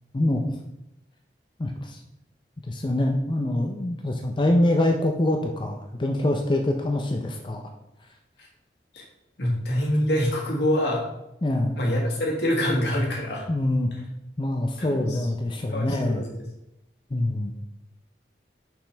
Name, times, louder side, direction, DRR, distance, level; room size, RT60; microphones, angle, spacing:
voice 1, 1.6-2.0 2.7-7.6 11.4-11.8 13.5-13.9 14.4-16.2 17.1-17.5, left 1 dB, 25° left, 3 dB, 0.4 m, -24 dB
voice 2, 9.4-11.0 11.7-13.5 14.8-15.2 15.7-16.3, equal, 75° left, -2 dB, 1.6 m, -25 dB
5.9 x 5.2 x 3.3 m, 0.87 s
head